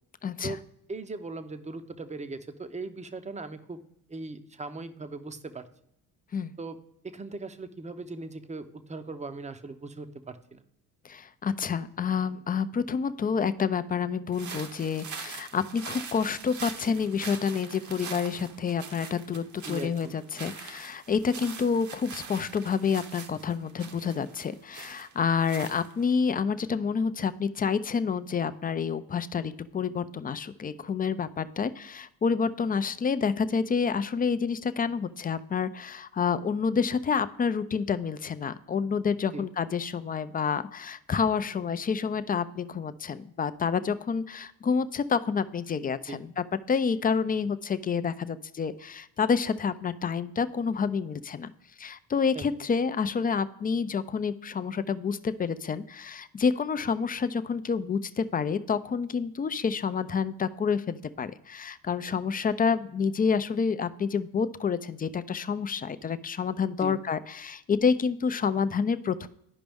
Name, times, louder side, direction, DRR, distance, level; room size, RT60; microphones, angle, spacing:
voice 1, 0.2-0.6 6.3-6.5 11.0-51.5 51.8-69.3, left 6 dB, 20° left, 13 dB, 0.4 m, -28 dB
voice 2, 0.9-3.8 4.1-5.6 6.6-6.8 7.0-10.6 19.6-20.1 39.3-39.5 46.1-46.2 52.3-52.4 66.8-67.0, right 3 dB, 15° right, 10 dB, 0.7 m, -39 dB
sound 1, 14.3-26.2, right 6 dB, 45° right, 1.0 m, -43 dB
11.5 x 5.1 x 3.5 m, 0.78 s
supercardioid pair, 65°, 40 cm